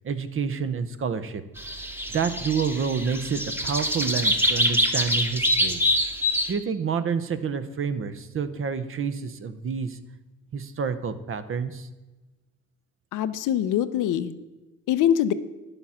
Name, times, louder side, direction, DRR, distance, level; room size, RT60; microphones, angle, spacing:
voice 1, 0.0-1.4 2.1-5.8 6.5-10.0 10.5-11.9, right 6 dB, 45° right, 12 dB, 0.8 m, -28 dB
sound 1, 1.6-6.5, equal, 5° right, 1.2 m, -25 dB
voice 2, 13.1-14.3 14.9-15.3, left 10 dB, 85° left, 12 dB, 0.7 m, -23 dB
10.0 x 7.0 x 5.6 m, 1.1 s
cardioid pair, 90°, 30 cm